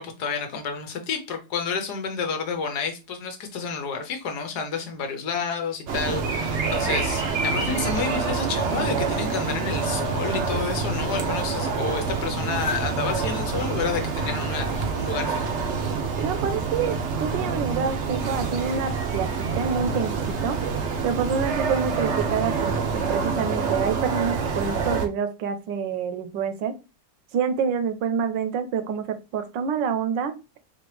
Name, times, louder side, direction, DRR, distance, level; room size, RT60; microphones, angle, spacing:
voice 1, 0.0-15.6, left 5 dB, 65° left, 6 dB, 1.3 m, -30 dB
sound 1, 5.9-25.1, right 4 dB, 60° right, 0.7 m, -27 dB
voice 2, 16.2-19.3 19.5-20.6 21.0-26.7 27.3-30.3, right 6 dB, 80° right, 9 dB, 1.4 m, -27 dB
4.3 x 2.9 x 3.2 m, 0.28 s
omnidirectional pair, 2.0 m